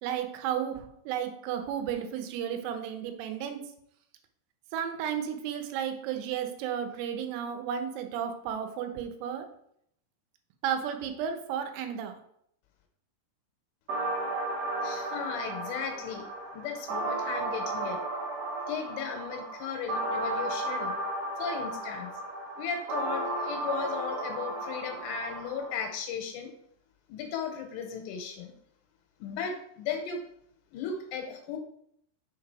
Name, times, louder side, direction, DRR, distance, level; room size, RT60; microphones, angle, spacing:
voice 1, 0.0-3.6 4.7-9.5 10.6-12.2, right 9 dB, 90° right, 7 dB, 3.6 m, -33 dB
sound 1, 13.9-25.9, right 2 dB, 55° right, 3.4 m, -34 dB
voice 2, 14.8-16.3 16.5-18.0 18.7-21.0 21.4-22.1 22.6-26.5 27.1-28.5 29.2-30.2 30.7-31.6, left 6 dB, 80° left, 4 dB, 3.2 m, -36 dB
7.2 x 4.7 x 4.8 m, 0.71 s
omnidirectional pair, 6.0 m